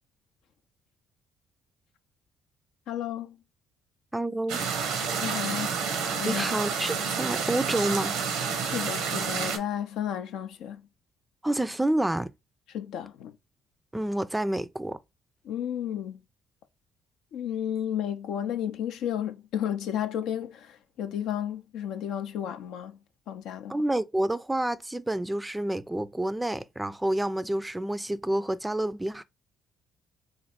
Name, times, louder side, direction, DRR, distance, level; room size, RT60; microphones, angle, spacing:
voice 1, 2.9-3.4 5.2-5.8 6.1-6.5 8.6-10.9 12.7-13.4 15.4-16.2 17.3-23.0 23.3-23.8, left 10 dB, 75° left, 0.4 m, -32 dB
voice 2, 4.1-4.6 6.3-8.2 11.4-12.3 13.9-15.0 23.7-29.2, right 1 dB, 10° right, 0.4 m, -28 dB
sound 1, 4.5-9.6, right 6 dB, 80° right, 0.7 m, -29 dB
3.1 x 2.5 x 4.1 m
hypercardioid pair, 55°, 0 cm